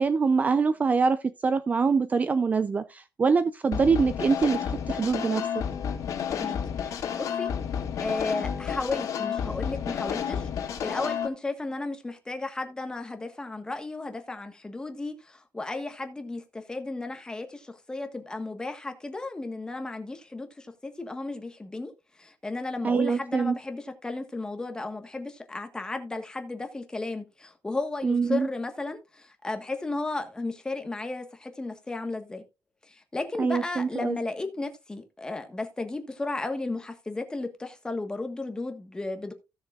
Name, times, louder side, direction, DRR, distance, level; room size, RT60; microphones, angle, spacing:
voice 1, 0.0-5.6 22.8-23.6 28.0-28.5 33.4-34.2, right 5 dB, 25° right, 0.5 m, -24 dB
sound 1, 3.7-11.3, left 8 dB, 60° left, 3.0 m, -31 dB
voice 2, 6.3-7.5 8.0-21.9 22.2-32.4 32.9-39.3, left 2 dB, 10° left, 1.4 m, -34 dB
16.5 x 6.6 x 2.4 m
cardioid pair, 160°, 6 cm